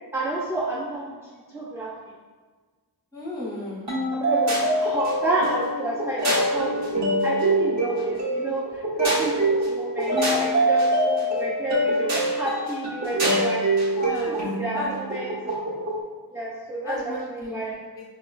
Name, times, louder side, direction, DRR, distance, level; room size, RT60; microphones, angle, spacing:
voice 1, 0.1-1.2 1.5-1.9 4.1-13.6 14.3-15.3 16.3-17.7, right 2 dB, 5° right, -6 dB, 0.3 m, -30 dB
voice 2, 3.1-3.9 14.0-14.4 14.7-14.9 16.8-18.0, left 1 dB, 10° left, -6 dB, 0.9 m, -34 dB
sound 1, 3.9-16.0, right 1 dB, 45° right, 1.0 m, -24 dB
4.8 x 2.2 x 2.3 m, 1.4 s
wide cardioid pair, 140°, 39 cm